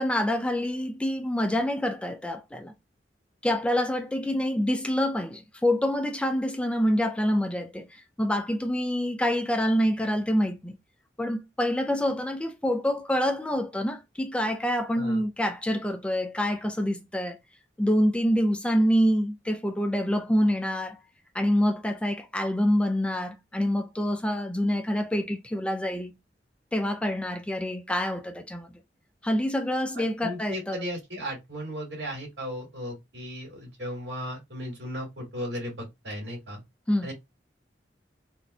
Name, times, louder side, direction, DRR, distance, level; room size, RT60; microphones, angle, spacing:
voice 1, 0.0-2.7 3.4-10.8 11.2-17.4 17.8-21.0 21.3-26.1 26.7-28.7 29.2-30.8 36.9-37.1, equal, 5° left, 0.3 m, -26 dB
voice 2, 29.9-36.6 37.0-37.1, equal, 70° right, 2.3 m, -36 dB
4.1 x 2.6 x 2.2 m
head